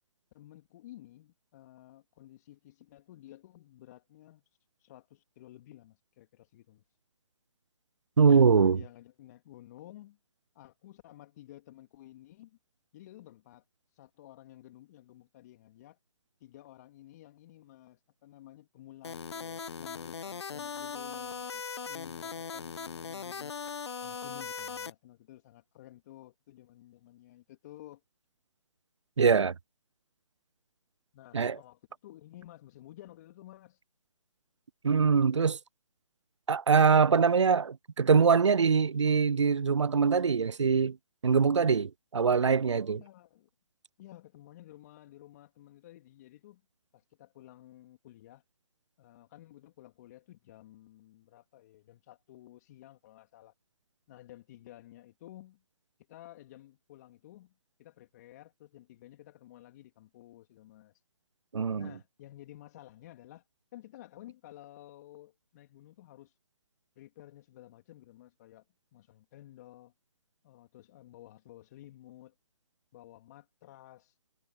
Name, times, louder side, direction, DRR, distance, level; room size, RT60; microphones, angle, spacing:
voice 1, 0.3-4.4 4.8-6.8 8.5-10.2 10.5-12.6 12.9-13.6 13.9-16.0 16.4-23.5 24.0-28.0 31.1-33.8 42.9-43.5 44.0-46.6 46.9-48.4 49.0-53.5 54.1-55.6 56.1-57.5 57.8-60.9 61.8-63.4 63.7-66.3 67.0-68.6 68.9-69.9 70.4-72.3 72.9-74.1, left 14 dB, 35° left, 2.9 m, -53 dB
voice 2, 8.2-8.8 29.2-29.5 31.3-31.6 34.8-35.6 36.5-41.0 41.2-43.0 61.5-61.9, right 5 dB, 80° right, 0.6 m, -23 dB
sound 1, 19.0-24.9, left 6 dB, 65° left, 1.2 m, -39 dB
figure-of-eight pair, 140°, 15 cm